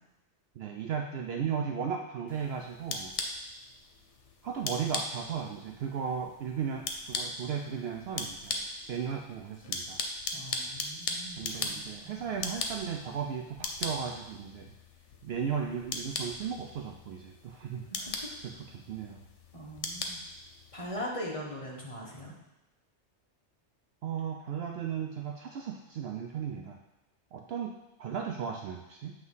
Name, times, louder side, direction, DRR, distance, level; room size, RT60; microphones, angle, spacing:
voice 1, 0.6-3.1 4.4-8.6 8.9-10.0 11.4-14.7 15.2-17.9 18.4-19.2 24.0-26.8 27.3-29.1, right 7 dB, 65° right, 2 dB, 0.7 m, -36 dB
sound 1, 2.3-21.1, left 3 dB, 85° left, 1.1 m, -39 dB
voice 2, 10.3-12.3 17.9-18.3 19.5-20.2 20.7-22.4, equal, 30° left, -3 dB, 1.3 m, -41 dB
8.0 x 3.2 x 5.5 m, 0.98 s
omnidirectional pair, 1.2 m